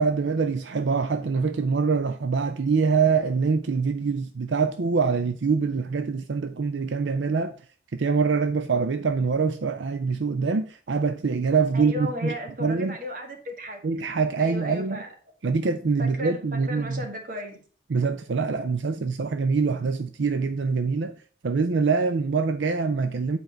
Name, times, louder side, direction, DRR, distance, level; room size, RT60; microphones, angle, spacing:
voice 1, 0.0-7.5 7.9-12.3 12.6-12.9 13.8-15.0 15.4-17.0 17.9-21.1 21.4-23.4, right 5 dB, 80° right, 0.5 m, -24 dB
voice 2, 11.7-13.8 14.4-15.1 16.0-17.6, equal, 45° right, 1.7 m, -35 dB
8.0 x 4.6 x 5.1 m
head